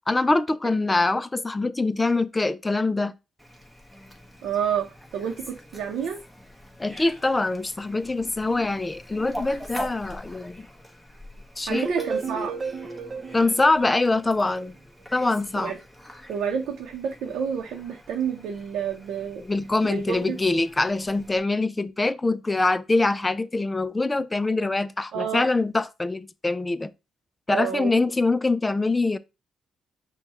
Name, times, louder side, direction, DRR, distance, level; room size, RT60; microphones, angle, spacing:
voice 1, 0.1-3.1 6.8-10.7 11.6-11.9 13.3-14.8 15.1-15.7 19.4-26.9 27.5-29.2, left 2 dB, 20° left, 0.4 m, -24 dB
Fowl, 3.4-21.4, equal, ahead, 1.1 m, -44 dB
voice 2, 4.4-6.2 11.7-12.6 15.6-15.8 16.3-19.4 19.8-20.4 25.1-25.4 27.5-28.0, right 7 dB, 80° right, 0.7 m, -29 dB
sound 1, 11.7-14.7, right 4 dB, 40° right, 0.7 m, -33 dB
5.5 x 2.3 x 4.2 m
cardioid pair, 90°, 0 cm